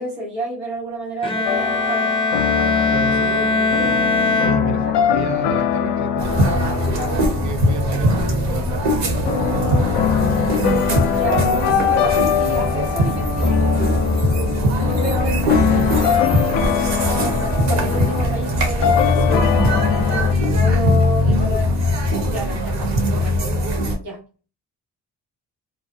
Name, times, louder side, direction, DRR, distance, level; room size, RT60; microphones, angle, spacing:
voice 1, 0.0-2.1 4.8-5.0 11.1-14.2 14.8-21.8 22.3-22.6 22.9-23.3 24.0-24.2, right 1 dB, 90° right, 1.1 m, -30 dB
Bowed string instrument, 1.2-5.2, left 3 dB, 10° left, 0.5 m, -21 dB
sound 1, 1.5-20.3, left 9 dB, 65° left, 0.5 m, -23 dB
voice 2, 2.9-4.1 4.4-10.4 22.1-23.0, right 6 dB, 40° right, 0.7 m, -32 dB
sound 2, 6.2-24.0, equal, 65° right, 1.1 m, -20 dB
2.6 x 2.0 x 2.8 m
hypercardioid pair, 45°, 46 cm